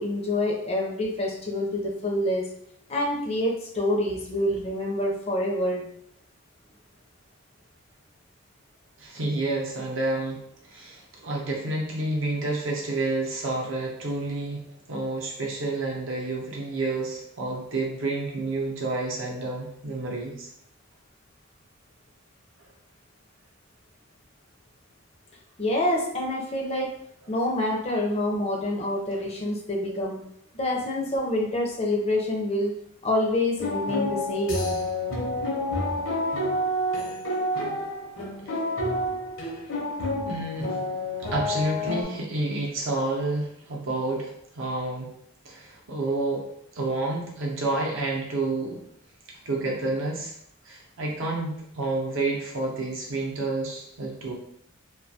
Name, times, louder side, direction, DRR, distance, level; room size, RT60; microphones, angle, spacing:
voice 1, 0.0-2.5 2.9-5.8 25.6-26.9 27.3-30.2 30.5-32.7 33.0-34.8, left 1 dB, 30° left, -1 dB, 0.5 m, -27 dB
voice 2, 9.0-14.6 14.9-20.5 38.4-38.6 40.2-40.8 41.3-45.1 45.4-46.5 46.7-48.8 49.5-50.3 50.6-54.3, right 2 dB, 65° right, -1 dB, 0.6 m, -29 dB
sound 1, 33.6-42.0, left 1 dB, 65° left, 0.7 m, -29 dB
2.2 x 2.2 x 2.7 m, 0.70 s
head